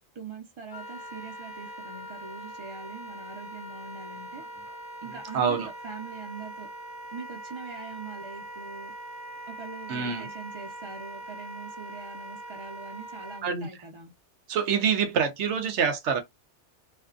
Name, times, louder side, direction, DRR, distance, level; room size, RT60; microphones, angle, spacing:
voice 1, 0.1-4.4 5.0-6.7 7.1-8.9 9.5-14.1, right 4 dB, 30° right, 0.7 m, -42 dB
Wind instrument woodwind instrument, 0.7-13.4, right 1 dB, 40° left, 0.7 m, -42 dB
voice 2, 5.3-5.7 9.9-10.3 13.4-13.7 14.5-16.2, right 6 dB, 80° right, 0.9 m, -26 dB
2.5 x 2.4 x 2.4 m
omnidirectional pair, 1.2 m